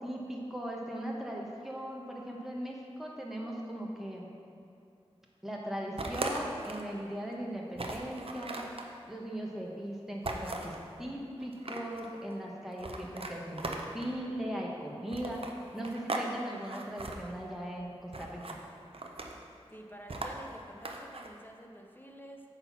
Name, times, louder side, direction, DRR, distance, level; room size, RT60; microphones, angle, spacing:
voice 1, 0.0-4.3 5.4-8.6 9.1-18.6, equal, 5° right, -2 dB, 1.0 m, -39 dB
sound 1, 6.0-6.9 7.3-7.4 7.8-8.9 10.2-10.8 11.4-12.1 12.8-14.2 15.1-16.3 16.6-17.2 18.1-18.6 18.9-19.5 20.1-21.3, right 2 dB, 60° right, 0.7 m, -38 dB
voice 2, 19.7-22.6, right 1 dB, 20° left, 2 dB, 0.7 m, -49 dB
8.6 x 4.1 x 5.8 m, 2.6 s
wide cardioid pair, 70°, 11 cm